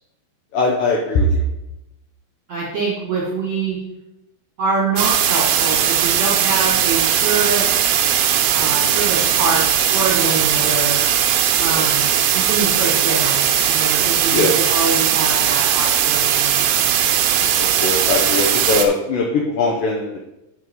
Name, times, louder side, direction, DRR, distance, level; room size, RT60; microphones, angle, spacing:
voice 1, 0.5-1.4 8.7-8.9 11.7-11.9 14.3-14.5 17.8-20.3, left 2 dB, 90° left, -1 dB, 1.9 m, -20 dB
voice 2, 2.5-3.8 4.6-8.0 8.5-11.0 11.6-12.1 12.3-16.9, right 3 dB, 55° right, -6 dB, 2.0 m, -24 dB
sound 1, 5.0-18.9, right 9 dB, 75° right, 2.5 m, -18 dB
8.6 x 4.8 x 5.3 m, 0.93 s
omnidirectional pair, 5.3 m